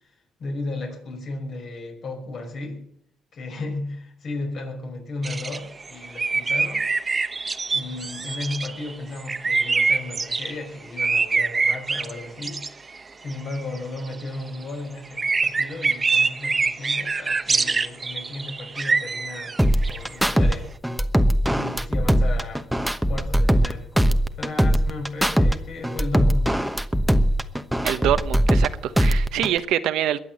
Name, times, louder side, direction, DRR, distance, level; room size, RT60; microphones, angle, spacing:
voice 1, 0.4-2.8 3.3-6.9 7.7-12.7 13.2-20.7 21.4-22.7 23.1-26.6, left 2 dB, 60° left, 5.9 m, -34 dB
sound 1, 5.2-10.5 11.0-13.0 13.3-14.5 15.1-20.3, right 4 dB, 30° right, 0.9 m, -25 dB
sound 2, 19.6-20.5 20.8-23.7 24.0-25.5 25.8-28.7 29.0-29.6, equal, ahead, 1.0 m, -20 dB
voice 2, 27.8-30.2, right 11 dB, 85° right, 1.0 m, -25 dB
21.5 x 8.3 x 7.7 m
cardioid pair, 90°, 0 cm